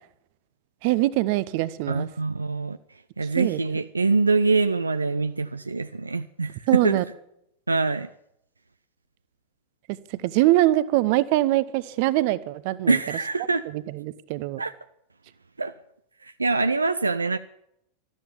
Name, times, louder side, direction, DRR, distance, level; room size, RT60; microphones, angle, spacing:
voice 1, 0.8-2.1 3.3-3.6 6.7-7.0 10.2-13.0 13.9-14.6, right 16 dB, 45° right, 0.8 m, -23 dB
voice 2, 1.9-2.8 3.2-7.0 7.7-8.1 12.9-13.7 14.6-14.7 15.6-15.7 16.2-17.4, right 3 dB, 80° right, 0.5 m, -24 dB
13.0 x 13.0 x 7.1 m
figure-of-eight pair, 90°, 0 cm